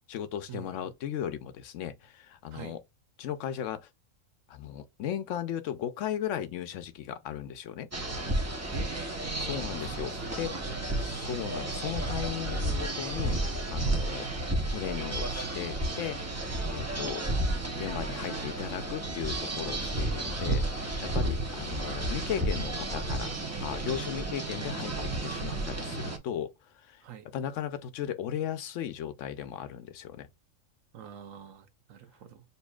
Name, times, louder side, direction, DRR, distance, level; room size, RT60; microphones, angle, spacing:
voice 1, 0.1-2.8 3.2-3.9 4.5-7.9 9.4-10.6 11.0-14.3 14.7-16.2 16.7-17.2 17.8-26.5 26.9-27.0 27.3-30.3, left 10 dB, 70° left, 0.9 m, -36 dB
sound 1, 7.9-26.2, right 2 dB, 15° right, 0.6 m, -32 dB
voice 2, 8.7-10.6 11.2-11.5 21.2-21.4 27.0-27.2 30.9-32.4, right 8 dB, 80° right, 1.1 m, -45 dB
6.7 x 2.7 x 2.3 m
omnidirectional pair, 1.4 m